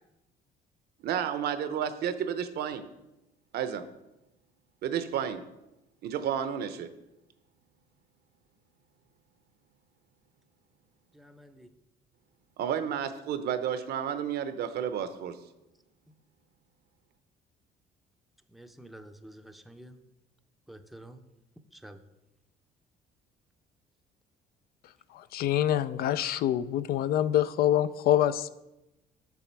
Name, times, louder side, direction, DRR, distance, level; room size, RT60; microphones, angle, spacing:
voice 1, 1.0-2.9 3.5-3.8 4.8-5.4 6.0-6.9 12.6-15.4, right 9 dB, 70° right, 11 dB, 0.7 m, -31 dB
voice 2, 11.1-11.7 18.5-20.0 20.7-21.2 21.7-22.0, right 1 dB, ahead, 7 dB, 0.6 m, -49 dB
voice 3, 25.1-28.5, left 11 dB, 65° left, 15 dB, 0.4 m, -26 dB
7.0 x 6.6 x 4.5 m, 0.94 s
cardioid pair, 110°, 17 cm